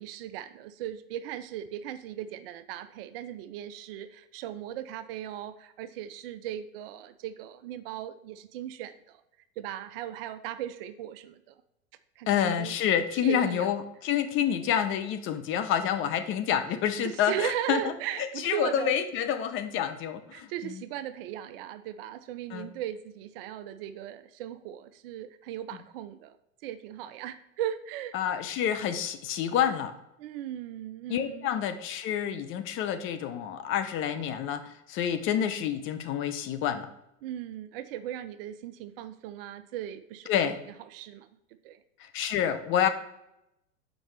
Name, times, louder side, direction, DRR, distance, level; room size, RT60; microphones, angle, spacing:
voice 1, 0.0-9.2 9.6-11.6 12.2-12.8 13.2-13.7 17.0-18.9 20.3-26.4 26.6-28.1 30.2-31.5 37.2-40.3 40.9-41.3 41.6-41.8, right 11 dB, 45° right, 13 dB, 0.5 m, -37 dB
voice 2, 12.3-17.9 18.4-20.8 22.5-22.7 28.1-29.9 31.1-36.9 40.3-40.6 42.0-42.9, left 9 dB, 30° left, 9 dB, 0.6 m, -28 dB
7.1 x 5.1 x 3.2 m, 0.84 s
hypercardioid pair, 100°, 40 cm